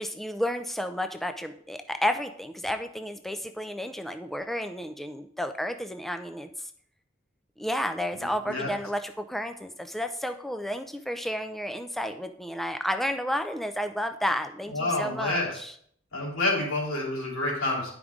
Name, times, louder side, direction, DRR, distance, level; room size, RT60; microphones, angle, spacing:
voice 1, 0.0-6.7 7.6-15.7, equal, ahead, 7 dB, 0.4 m, -31 dB
voice 2, 14.7-15.5 16.1-17.9, left 2 dB, 80° left, -4 dB, 3.3 m, -28 dB
11.0 x 5.0 x 3.6 m, 0.63 s
head